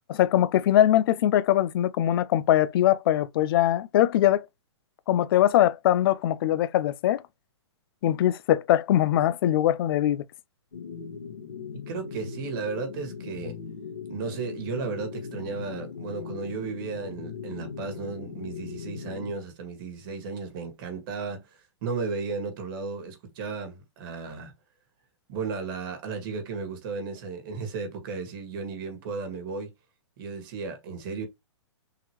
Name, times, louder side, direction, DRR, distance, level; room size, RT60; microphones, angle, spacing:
voice 1, 0.1-4.4 5.1-7.2 8.0-10.2, left 12 dB, 50° left, 0.5 m, -22 dB
sound 1, 10.7-19.3, left 6 dB, 85° left, 1.3 m, -39 dB
voice 2, 11.9-13.6 14.1-21.5 21.8-24.5 25.3-29.7 30.2-31.3, right 4 dB, 45° right, 1.6 m, -34 dB
3.8 x 2.9 x 2.9 m
hypercardioid pair, 135°, 15 cm